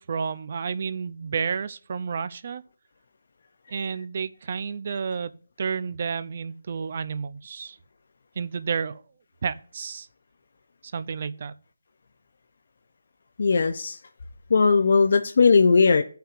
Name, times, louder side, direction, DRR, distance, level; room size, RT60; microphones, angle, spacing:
voice 1, 0.0-2.6 3.7-5.3 5.6-7.8 8.4-9.0 9.4-10.1 10.8-11.5, right 6 dB, 40° right, 0.4 m, -31 dB
voice 2, 13.4-14.0 14.5-16.0, left 4 dB, 55° left, 0.6 m, -18 dB
14.5 x 5.6 x 2.5 m
hypercardioid pair, 165°, 0 cm